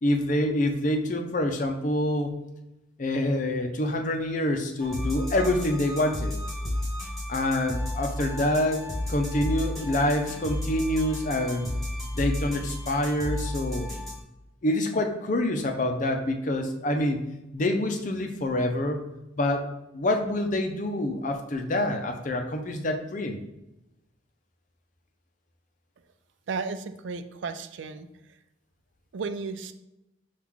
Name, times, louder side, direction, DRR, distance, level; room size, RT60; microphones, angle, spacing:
voice 1, 0.0-2.3 3.0-6.4 7.3-11.7 12.1-13.9 14.6-17.2 17.5-19.0 19.4-19.7 19.9-23.4, left 1 dB, 40° left, 4 dB, 0.6 m, -26 dB
sound 1, 4.8-14.2, left 1 dB, 5° left, 1.6 m, -32 dB
voice 2, 26.5-28.4 29.1-29.7, right 4 dB, 70° right, 10 dB, 0.4 m, -34 dB
6.0 x 2.4 x 3.6 m, 0.92 s
head